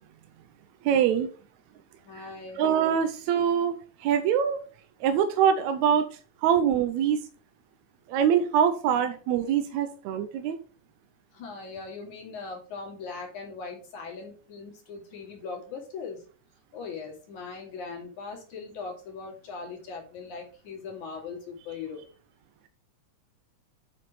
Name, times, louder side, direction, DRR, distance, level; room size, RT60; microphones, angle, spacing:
voice 1, 0.8-1.3 2.6-4.6 5.0-6.0 6.4-7.2 8.1-10.6, right 8 dB, 80° right, 8 dB, 2.0 m, -24 dB
voice 2, 2.0-2.6 11.3-16.2 16.7-22.0, left 4 dB, 90° left, 0 dB, 3.8 m, -40 dB
8.5 x 5.4 x 4.9 m, 0.39 s
omnidirectional pair, 3.3 m